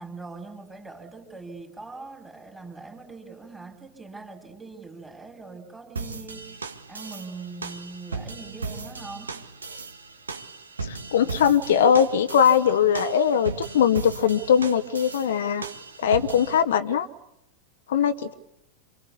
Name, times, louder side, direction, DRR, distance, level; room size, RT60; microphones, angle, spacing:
voice 1, 0.0-9.4, right 3 dB, 10° right, 3 dB, 3.8 m, -42 dB
sound 1, 6.0-16.6, right 4 dB, 75° right, 1.7 m, -37 dB
voice 2, 10.8-15.6 16.0-17.1 17.9-18.3, left 8 dB, 60° left, 10 dB, 1.1 m, -21 dB
28.0 x 24.0 x 8.5 m, 0.83 s
figure-of-eight pair, 90°, 0 cm